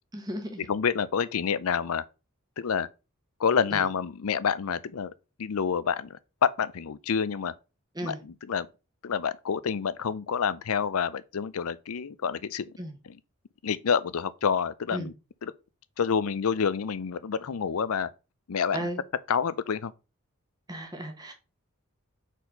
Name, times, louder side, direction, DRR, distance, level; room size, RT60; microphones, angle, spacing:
voice 1, 0.1-0.7 3.7-3.8 7.9-8.2 12.8-13.0 14.9-15.1 18.7-19.0 20.7-21.3, right 1 dB, 20° right, 1.1 m, -35 dB
voice 2, 0.7-2.0 2.6-2.9 3.4-5.1 5.4-7.5 8.0-8.7 9.0-12.7 13.1-13.2 13.6-15.1 15.4-15.5 16.0-18.1 18.5-18.9 19.3-19.9, left 6 dB, 80° left, 0.5 m, -28 dB
4.6 x 4.2 x 5.2 m
head